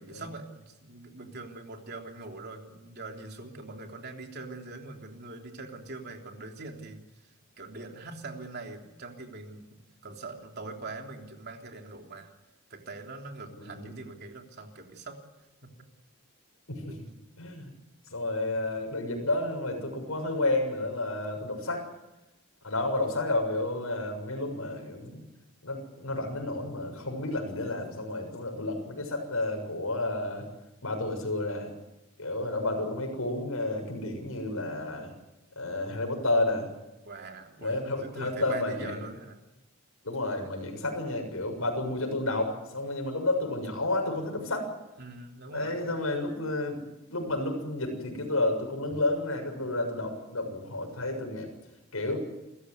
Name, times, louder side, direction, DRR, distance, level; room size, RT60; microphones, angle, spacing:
voice 1, 0.0-7.0 7.6-12.3 12.7-15.2 15.6-15.7 16.9-17.0 37.0-39.4 45.0-45.8 48.9-49.0, right 3 dB, 50° right, 3 dB, 3.4 m, -43 dB
voice 2, 13.6-13.9 16.7-16.9 17.4-17.7 18.1-21.8 22.6-25.2 25.6-30.4 30.8-31.7 32.2-35.1 35.6-36.7 37.6-39.0 40.0-44.7 45.5-46.8 47.1-51.5 51.9-52.2, left 2 dB, 90° left, 3 dB, 7.0 m, -31 dB
28.0 x 15.0 x 9.6 m, 0.98 s
head